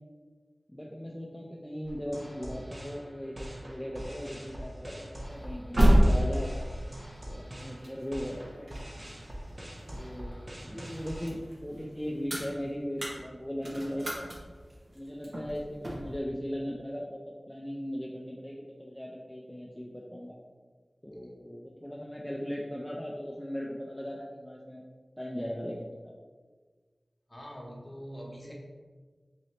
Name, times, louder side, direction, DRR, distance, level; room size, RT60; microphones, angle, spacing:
voice 1, 0.7-6.5 7.3-8.7 9.9-14.2 14.9-20.4 21.0-24.8 25.2-26.1 28.4-28.5, equal, 10° left, -3 dB, 0.4 m, -38 dB
sound 1, 1.8-11.3, equal, 40° right, 0.8 m, -43 dB
sound 2, 5.3-10.3 10.7-16.2, equal, 70° right, 0.9 m, -29 dB
voice 2, 10.3-10.9 27.3-28.5, equal, 25° left, -3 dB, 0.9 m, -45 dB
4.0 x 2.7 x 3.1 m, 1.4 s
wide cardioid pair, 55°, 0 cm